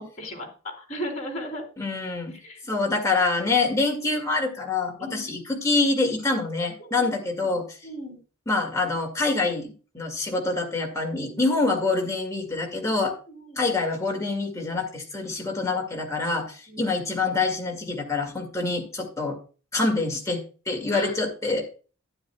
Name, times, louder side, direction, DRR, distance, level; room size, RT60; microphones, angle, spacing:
voice 1, 0.0-1.6 2.3-2.6 5.0-5.4 6.9-7.0 7.4-7.5 7.8-8.2 11.2-11.4 13.3-13.8 16.7-16.9 20.9-21.1, equal, 35° left, 2 dB, 3.2 m, -37 dB
voice 2, 1.8-2.4 2.7-7.8 8.5-13.2 13.6-19.4 19.7-21.7, left 3 dB, 15° left, 1 dB, 2.0 m, -26 dB
12.0 x 10.0 x 2.2 m, 0.36 s
head